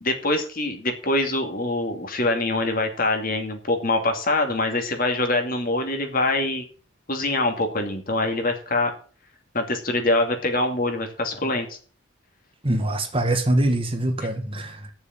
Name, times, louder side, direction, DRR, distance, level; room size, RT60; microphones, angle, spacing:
voice 1, 0.0-6.6 7.1-8.9 9.5-11.8, left 2 dB, 45° left, 2.5 m, -24 dB
voice 2, 12.6-14.9, right 1 dB, 30° right, 1.5 m, -23 dB
9.7 x 7.0 x 7.5 m
head